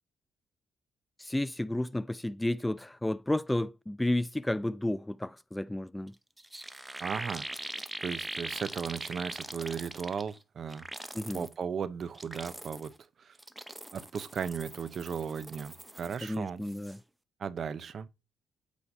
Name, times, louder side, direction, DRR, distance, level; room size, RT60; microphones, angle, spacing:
voice 1, 1.2-6.1 11.1-11.5 16.2-17.0, left 1 dB, 10° left, 0.3 m, -32 dB
sound 1, 6.1-6.2 6.4-10.4 10.7-11.5 12.0-13.0 13.4-16.4 16.6-17.0, right 1 dB, 10° right, 0.8 m, -42 dB
voice 2, 7.0-7.4 8.0-10.9 11.3-12.9 13.2-13.3 13.9-16.6 17.4-18.1, right 7 dB, 55° right, 0.8 m, -36 dB
8.4 x 3.2 x 5.3 m
cardioid pair, 90°, 0 cm